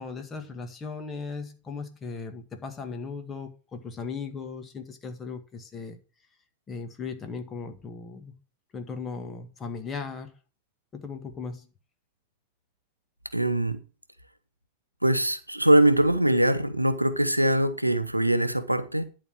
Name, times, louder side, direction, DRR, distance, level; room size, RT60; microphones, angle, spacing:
voice 1, 0.0-6.0 6.7-8.3 8.7-10.3 10.9-11.6, left 5 dB, 20° left, 1.8 m, -37 dB
voice 2, 13.3-13.8 15.0-19.0, right 1 dB, 85° right, 0.7 m, -22 dB
11.0 x 4.1 x 6.3 m
figure-of-eight pair, 90°, 0 cm